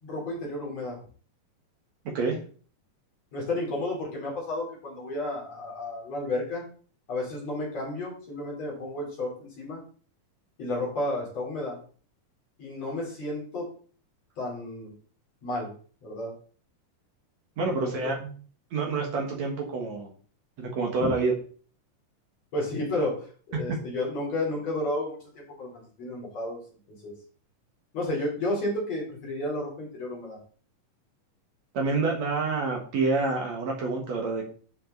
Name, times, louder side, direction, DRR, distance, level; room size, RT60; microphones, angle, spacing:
voice 1, 0.0-1.0 3.3-6.6 7.1-9.8 10.6-11.8 12.6-13.7 14.4-14.9 15.4-15.7 16.0-16.3 17.6-17.9 21.0-21.1 22.5-26.6 27.0-27.1 27.9-30.4, left 1 dB, 50° left, -4 dB, 4.9 m, -32 dB
voice 2, 17.6-18.3 18.7-20.1 20.6-21.3 31.7-34.5, right 3 dB, 60° right, 0 dB, 2.5 m, -27 dB
10.5 x 5.8 x 4.0 m, 0.42 s
omnidirectional pair, 3.8 m